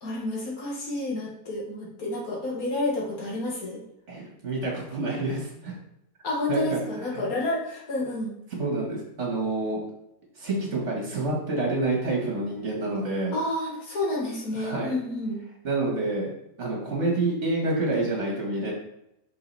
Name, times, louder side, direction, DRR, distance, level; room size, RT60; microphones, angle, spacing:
voice 1, 0.0-3.8 6.2-8.3 13.3-15.4, left 2 dB, 80° left, -3 dB, 2.3 m, -30 dB
voice 2, 4.1-5.7 6.5-6.8 8.5-9.8 10.4-13.4 14.5-15.0 15.6-16.3 16.6-18.7, right 2 dB, 55° right, -2 dB, 2.2 m, -28 dB
6.2 x 5.5 x 4.2 m, 0.80 s
omnidirectional pair, 1.5 m